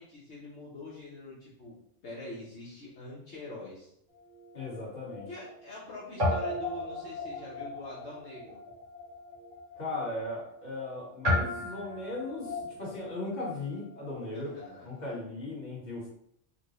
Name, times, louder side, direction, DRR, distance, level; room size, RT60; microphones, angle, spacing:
voice 1, 0.0-1.8 2.0-3.9 5.3-8.6 14.3-14.9, left 2 dB, 65° left, -7 dB, 1.3 m, -44 dB
Guitar, 4.1-5.9 6.2-14.8, left 1 dB, 85° right, 2.0 m, -36 dB
voice 2, 4.5-5.3 9.8-14.5 14.8-16.1, left 2 dB, 35° left, -6 dB, 1.6 m, -37 dB
5.8 x 2.3 x 3.0 m, 0.72 s
omnidirectional pair, 1.3 m